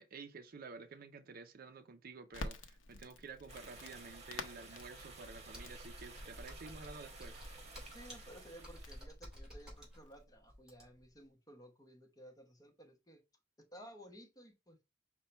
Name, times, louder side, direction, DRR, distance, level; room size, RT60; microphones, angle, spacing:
voice 1, 0.0-7.4, right 4 dB, 50° right, 0.5 m, -51 dB
Crackle, 2.3-10.2, left 2 dB, 85° left, 0.7 m, -51 dB
sound 1, 3.5-9.0, right 2 dB, 35° right, 1.2 m, -54 dB
Computer keyboard, 5.5-11.1, equal, 5° right, 2.7 m, -52 dB
voice 2, 7.9-13.2 13.7-14.8, equal, 20° left, 0.9 m, -56 dB
5.5 x 2.2 x 4.3 m
head